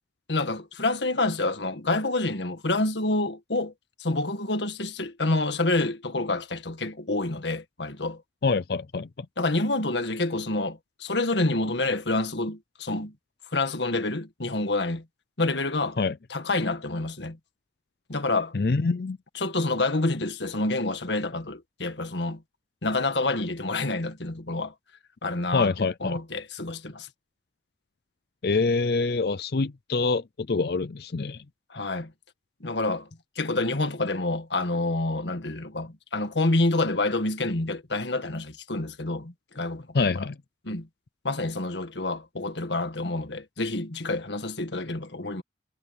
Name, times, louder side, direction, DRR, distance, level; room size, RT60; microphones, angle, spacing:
voice 1, 0.3-3.7 4.0-8.2 9.4-13.1 13.5-15.0 15.4-16.0 16.3-17.4 18.1-18.5 19.3-22.4 22.8-24.7 25.2-27.1 31.7-32.1 32.6-33.1 33.3-40.3 40.6-40.9 41.2-45.4, left 2 dB, 80° left, 1.8 m, -28 dB
voice 2, 8.4-9.1 16.0-16.1 18.5-19.2 25.5-26.2 28.4-31.4 39.9-40.4, left 4 dB, 60° left, 0.5 m, -25 dB
head